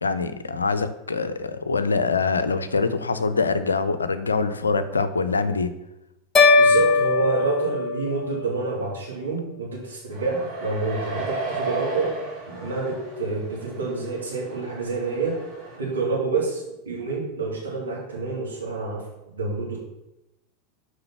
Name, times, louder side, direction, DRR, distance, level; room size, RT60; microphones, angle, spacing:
voice 1, 0.0-5.7, left 4 dB, 80° left, 12 dB, 0.5 m, -24 dB
sound 1, 6.3-8.6, left 4 dB, 25° left, 1.2 m, -19 dB
voice 2, 6.6-12.1 12.5-15.4 15.8-19.8, right 4 dB, 75° right, -4 dB, 2.5 m, -28 dB
sound 2, 10.1-15.8, right 3 dB, 40° right, 2.6 m, -34 dB
6.7 x 4.8 x 5.7 m, 0.92 s
figure-of-eight pair, 85°, 0 cm